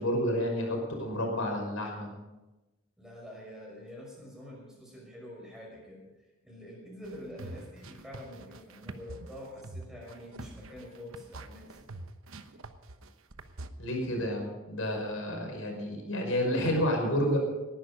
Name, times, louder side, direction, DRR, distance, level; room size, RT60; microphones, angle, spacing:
voice 1, 0.0-2.1 13.8-17.4, equal, 85° left, 1 dB, 5.5 m, -30 dB
voice 2, 3.0-6.0 6.4-12.0, left 1 dB, ahead, -3 dB, 5.7 m, -46 dB
sound 1, 7.0-13.7, right 2 dB, 80° right, 1.0 m, -45 dB
18.5 x 11.5 x 5.4 m, 1.1 s
head